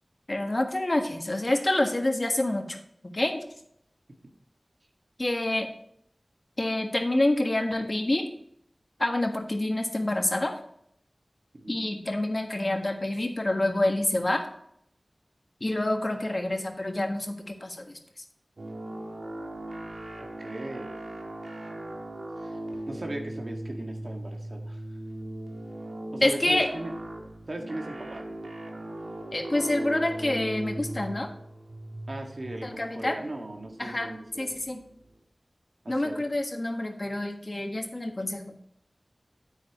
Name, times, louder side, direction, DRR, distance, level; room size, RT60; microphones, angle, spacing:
voice 1, 0.3-3.4 5.2-5.7 6.6-8.2 9.0-10.6 11.7-14.5 15.6-18.0 26.2-26.7 29.3-31.3 32.6-33.2 33.8-34.8 35.9-38.6, left 1 dB, 45° left, 4 dB, 1.5 m, -27 dB
sound 1, 18.6-35.1, right 1 dB, 85° right, 1.4 m, -39 dB
voice 2, 20.2-20.9 22.4-22.6 22.9-24.8 26.1-26.9 27.5-28.2 32.1-34.5 35.8-36.1, right 1 dB, 65° right, 2 dB, 1.9 m, -37 dB
9.0 x 8.8 x 3.1 m, 0.69 s
wide cardioid pair, 40°, 0 cm